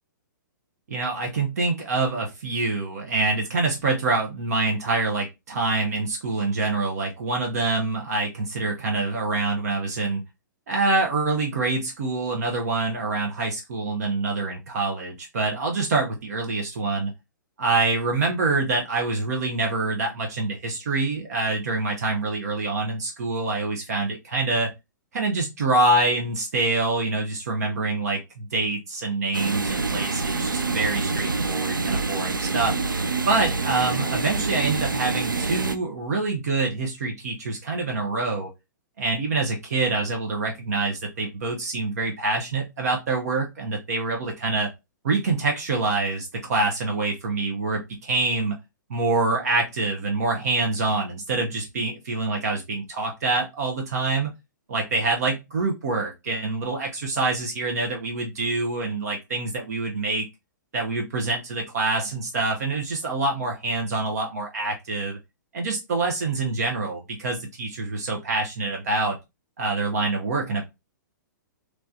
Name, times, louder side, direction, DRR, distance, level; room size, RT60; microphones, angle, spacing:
voice 1, 0.9-10.2 10.7-17.1 17.6-24.7 25.1-32.7 33.3-38.5 39.0-44.7 45.0-48.5 48.9-54.3 54.7-60.3 60.7-65.2 65.5-69.2 69.6-70.6, right 3 dB, 50° right, 1 dB, 0.8 m, -26 dB
sound 1, 29.3-35.8, right 3 dB, 80° right, 0.4 m, -26 dB
3.3 x 3.1 x 2.5 m, 0.23 s
figure-of-eight pair, 115°, 11 cm